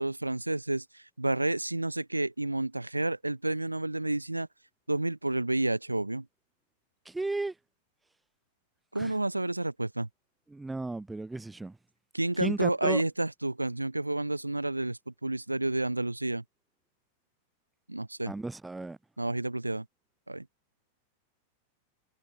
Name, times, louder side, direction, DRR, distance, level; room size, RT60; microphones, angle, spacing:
voice 1, 0.0-4.5 4.9-6.3 8.9-10.1 12.1-16.4 17.9-18.3 19.2-19.9 20.3-20.5, right 2 dB, 85° right, 0.5 m, -30 dB
voice 2, 7.1-7.5 8.9-9.1 10.5-11.8 12.4-13.0 18.3-19.0, right 2 dB, 10° right, 0.8 m, -34 dB
figure-of-eight pair, 90°, 0 cm